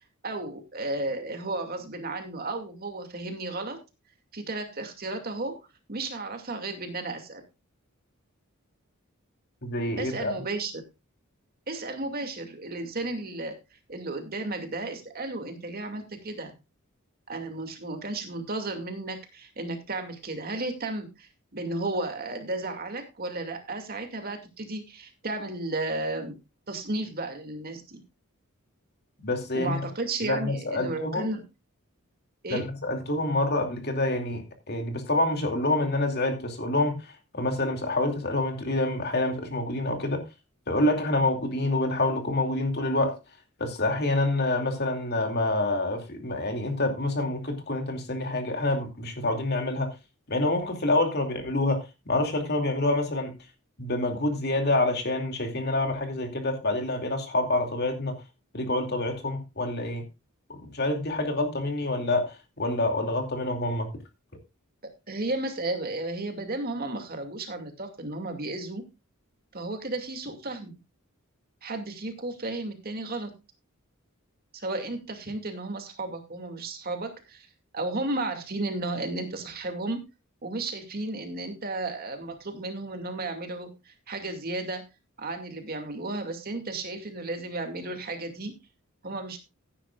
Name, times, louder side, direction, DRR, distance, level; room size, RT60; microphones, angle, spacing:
voice 1, 0.2-3.8 4.3-5.6 5.9-7.4 10.0-10.8 11.7-13.6 13.9-16.5 17.3-26.3 26.7-28.0 29.5-31.4 32.4-32.7 65.1-68.9 69.5-70.8 71.6-73.3 74.5-77.5 77.7-80.0 80.4-84.9 85.2-88.5 89.0-89.4, right 2 dB, 45° right, 2.4 m, -33 dB
voice 2, 9.6-10.3 29.2-29.8 30.2-31.3 32.5-40.2 40.7-43.2 43.6-49.9 50.3-53.3 53.8-58.2 58.5-60.0 60.5-63.9, left 2 dB, 50° left, 2.6 m, -27 dB
15.5 x 10.0 x 2.4 m
head